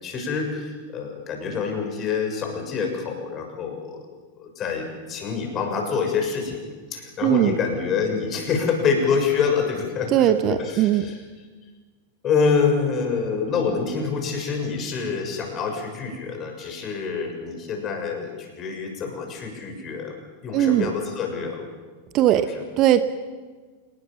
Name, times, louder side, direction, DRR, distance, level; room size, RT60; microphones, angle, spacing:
voice 1, 0.0-4.0 4.4-6.6 6.9-11.2 12.2-20.1 20.4-21.6 22.4-22.6, left 5 dB, 30° left, 3 dB, 6.7 m, -26 dB
voice 2, 7.2-7.6 10.1-11.1 20.5-20.9 22.1-22.5 22.8-23.0, right 12 dB, 35° right, 12 dB, 1.1 m, -19 dB
27.0 x 20.0 x 7.2 m, 1.4 s
figure-of-eight pair, 90°, 0 cm